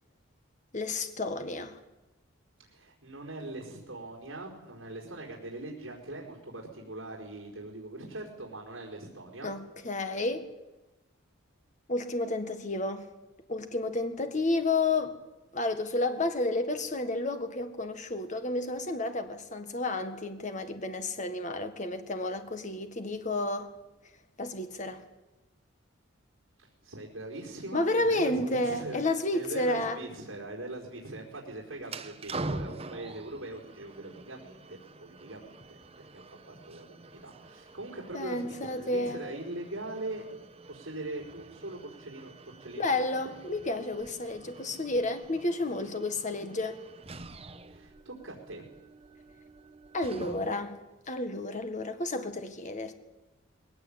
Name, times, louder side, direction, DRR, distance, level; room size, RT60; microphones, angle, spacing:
voice 1, 0.7-1.8 9.4-10.5 11.9-13.1 13.5-15.2 15.5-23.7 24.4-25.1 27.7-30.0 38.1-39.2 42.8-46.8 49.9-50.8 51.1-52.9, left 2 dB, 35° left, 1.6 m, -31 dB
voice 2, 2.6-9.5 26.6-40.3 40.7-42.9 47.7-48.6, right 2 dB, 70° right, 4.6 m, -41 dB
sound 1, 31.8-50.7, right 2 dB, 30° right, 1.0 m, -45 dB
21.0 x 18.0 x 8.7 m
head